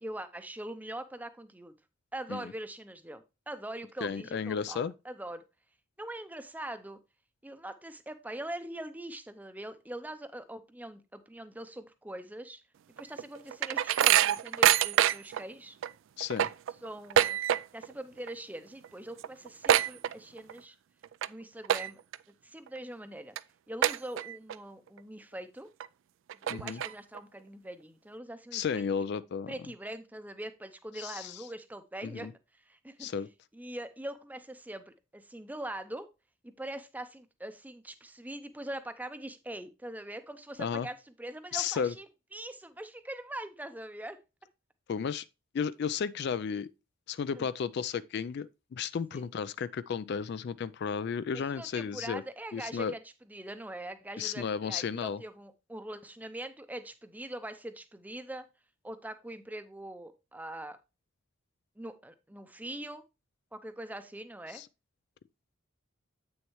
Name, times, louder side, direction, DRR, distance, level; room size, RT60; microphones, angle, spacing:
voice 1, 0.0-1.7 2.1-5.4 6.0-7.0 7.4-12.6 13.0-15.8 16.8-17.4 17.7-20.8 21.3-22.0 22.4-23.4 23.7-25.7 26.4-28.8 29.5-33.1 33.5-36.1 36.4-42.1 42.3-44.2 47.3-47.5 49.1-49.3 51.3-58.5 58.8-60.8 61.8-63.0 63.5-64.6, right 1 dB, 10° right, 0.5 m, -42 dB
voice 2, 4.0-4.9 16.2-16.5 26.5-26.8 28.5-29.5 31.0-31.4 32.0-32.3 33.0-33.3 40.6-40.9 41.5-41.9 44.9-45.2 45.5-46.7 47.1-52.2 52.5-52.9 54.2-55.2 64.5-64.7, left 6 dB, 50° left, 0.3 m, -33 dB
sound 1, 13.0-15.4 15.8-15.9 16.2-17.9 18.2-18.6 18.8-18.9 19.2-20.6 21.0-21.3 21.6-22.2 22.7-22.8 23.4-23.5 23.8-24.6 25.0-25.1 25.8-25.9 26.3-27.2, right 11 dB, 65° right, 0.3 m, -26 dB
8.3 x 6.3 x 3.0 m
head